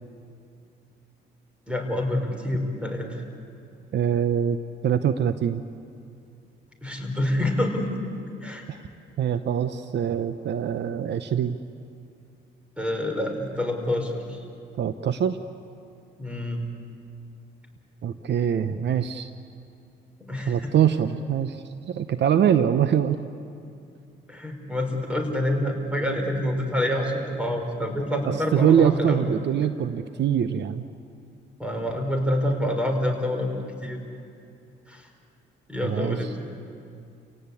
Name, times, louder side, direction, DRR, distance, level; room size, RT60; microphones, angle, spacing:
voice 1, 1.7-3.2 6.8-8.1 8.4-8.6 12.8-14.4 16.2-16.6 20.2-20.8 24.3-29.3 31.6-33.5 33.8-34.0 34.9-35.1 35.7-36.3, left 1 dB, 5° right, 3 dB, 4.7 m, -27 dB
voice 2, 3.9-4.6 4.8-5.6 8.7-8.8 9.2-11.6 14.8-15.4 18.0-19.3 20.5-23.2 28.5-30.8 35.8-36.2, right 9 dB, 60° right, 10 dB, 0.9 m, -23 dB
30.0 x 17.5 x 8.5 m, 2.5 s
cardioid pair, 90°, 20 cm